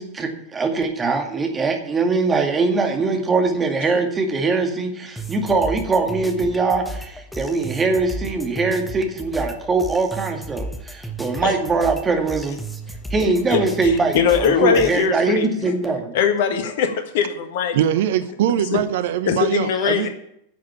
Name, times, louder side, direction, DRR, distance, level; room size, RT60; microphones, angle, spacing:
voice 1, 0.0-12.6 13.1-16.1, right 3 dB, 20° right, 4 dB, 2.1 m, -22 dB
sound 1, 5.2-15.1, right 2 dB, 5° left, 1.2 m, -34 dB
voice 2, 13.5-15.7 16.1-17.8 18.7-18.8 19.3-20.1, left 7 dB, 55° left, 7 dB, 1.6 m, -21 dB
voice 3, 17.7-20.1, right 10 dB, 55° right, 13 dB, 0.7 m, -22 dB
10.5 x 7.4 x 8.7 m, 0.75 s
figure-of-eight pair, 90°, 0 cm